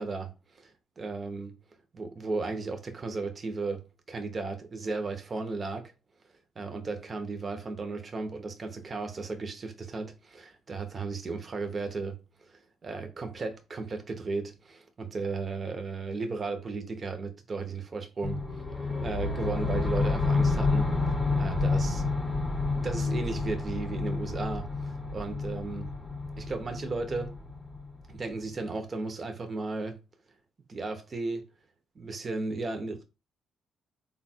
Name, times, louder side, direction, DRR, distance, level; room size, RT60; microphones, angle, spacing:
voice 1, 0.0-1.5 1.9-5.9 6.6-12.2 12.5-20.9 21.3-22.0 22.8-25.9 26.4-27.3 28.1-30.0 30.7-31.4 31.9-33.0, right 3 dB, 35° right, 0.9 m, -35 dB
sound 1, 18.2-28.3, left 3 dB, 15° left, 0.9 m, -29 dB
3.6 x 2.4 x 4.2 m
cardioid pair, 90°, 0 cm